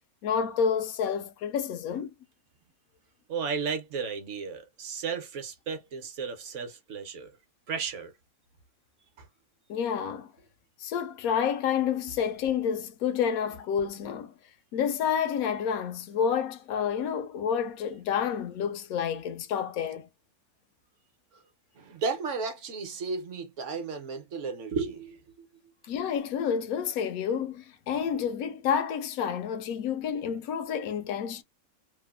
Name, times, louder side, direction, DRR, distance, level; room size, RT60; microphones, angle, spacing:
voice 1, 0.2-2.1 9.7-10.3 10.8-14.3 14.7-20.1 25.9-31.4, left 7 dB, 90° left, 1.1 m, -29 dB
voice 2, 3.3-7.3 7.7-8.1 21.8-25.5, right 5 dB, 65° right, 1.0 m, -34 dB
3.0 x 2.1 x 2.3 m
omnidirectional pair, 1.5 m